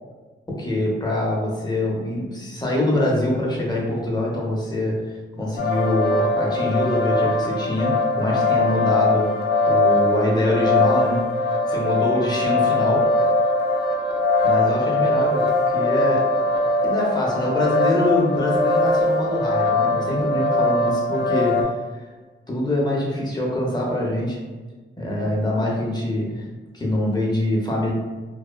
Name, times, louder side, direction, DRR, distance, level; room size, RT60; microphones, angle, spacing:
voice 1, 0.6-9.3 9.7-13.1 14.4-16.4 16.8-21.7 22.5-24.4 25.0-26.4 26.7-27.9, left 1 dB, 20° left, -3 dB, 0.7 m, -24 dB
sound 1, 5.6-21.6, left 2 dB, 55° left, 0.5 m, -21 dB
2.7 x 2.1 x 2.2 m, 1.3 s
cardioid pair, 80°, 21 cm